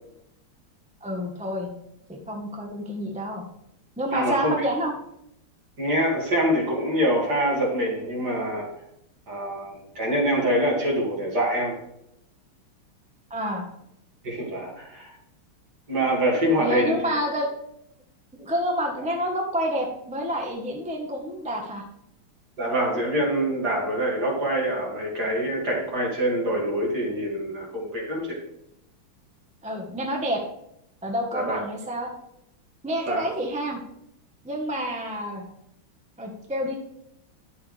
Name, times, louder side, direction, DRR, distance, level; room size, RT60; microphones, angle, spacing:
voice 1, 1.0-1.7 2.1-3.4 4.0-4.9 13.3-13.6 16.5-17.5 18.4-21.8 29.6-30.4 31.0-32.1 32.8-33.8 34.4-35.5 36.2-36.8, equal, 5° right, 1 dB, 0.7 m, -28 dB
voice 2, 4.1-4.7 5.8-8.7 9.3-11.8 14.2-15.1 15.9-17.2 19.0-19.1 22.6-28.4 31.3-31.6 33.1-33.3, equal, 45° right, -2 dB, 2.8 m, -25 dB
11.0 x 6.9 x 3.4 m, 0.79 s
omnidirectional pair, 2.4 m